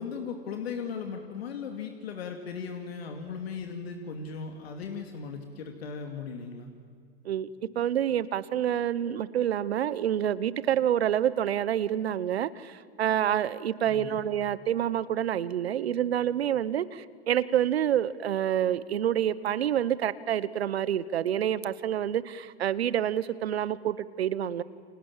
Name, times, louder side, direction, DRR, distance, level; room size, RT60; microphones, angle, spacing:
voice 1, 0.0-6.7 13.8-14.3, left 5 dB, 75° left, 4 dB, 2.7 m, -37 dB
voice 2, 7.7-24.6, right 10 dB, 80° right, 17 dB, 1.1 m, -27 dB
29.5 x 26.0 x 7.4 m, 2.1 s
hypercardioid pair, 105°, 31 cm